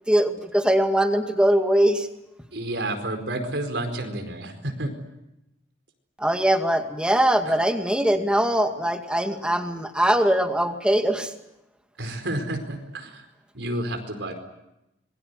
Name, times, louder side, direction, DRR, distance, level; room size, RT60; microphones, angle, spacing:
voice 1, 0.1-2.1 6.2-11.3, right 1 dB, 5° right, 5 dB, 2.2 m, -21 dB
voice 2, 2.5-4.9 12.0-13.2 13.5-14.3, right 1 dB, 80° right, 5 dB, 4.7 m, -30 dB
26.5 x 22.5 x 8.2 m, 0.89 s
head